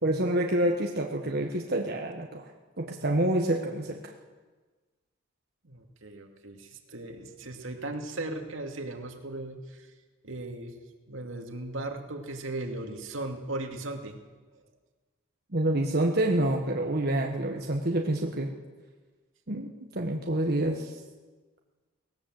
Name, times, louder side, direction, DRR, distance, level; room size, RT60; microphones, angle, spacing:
voice 1, 0.0-2.4 2.8-4.1 15.5-18.5 19.5-19.7 19.9-20.9, right 1 dB, 50° right, 1 dB, 1.4 m, -27 dB
voice 2, 5.6-9.9 10.2-10.7 11.1-14.2, right 2 dB, 75° right, 3 dB, 2.4 m, -37 dB
18.5 x 18.5 x 7.7 m, 1.3 s
head